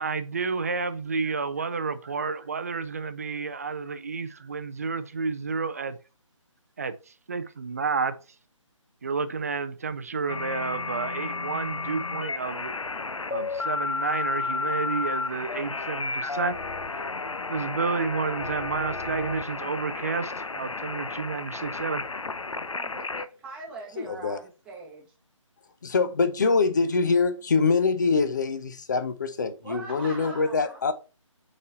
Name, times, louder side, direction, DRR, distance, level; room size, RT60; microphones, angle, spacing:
voice 1, 0.0-6.0 6.8-6.9 7.3-8.2 9.0-12.7 13.3-16.6 16.9-17.0 17.5-22.0, right 4 dB, 30° right, 0.5 m, -30 dB
sound 1, 10.3-23.2, left 4 dB, 70° left, 0.6 m, -32 dB
voice 2, 22.7-25.1 29.6-30.8, right 2 dB, 5° right, 1.1 m, -41 dB
voice 3, 24.0-24.4 25.8-30.9, left 4 dB, 35° left, 0.7 m, -24 dB
5.2 x 4.2 x 4.5 m
figure-of-eight pair, 150°, 17 cm